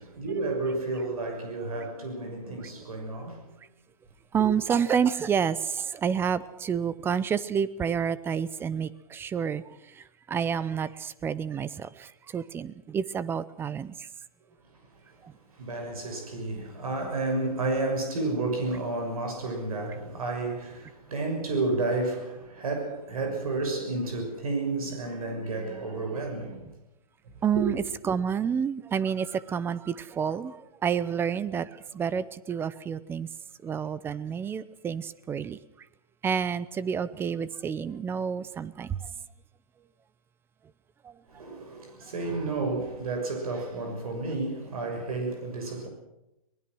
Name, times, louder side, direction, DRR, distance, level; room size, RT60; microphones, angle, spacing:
voice 1, 0.2-3.5 15.6-26.6 27.5-27.6 41.3-45.9, right 2 dB, 75° right, 6.5 m, -31 dB
voice 2, 4.3-14.1 15.2-15.3 27.4-33.3 33.6-35.6 36.2-39.0 41.0-41.1, right 7 dB, 10° right, 0.7 m, -29 dB
23.5 x 20.5 x 6.3 m
hypercardioid pair, 140°, 19 cm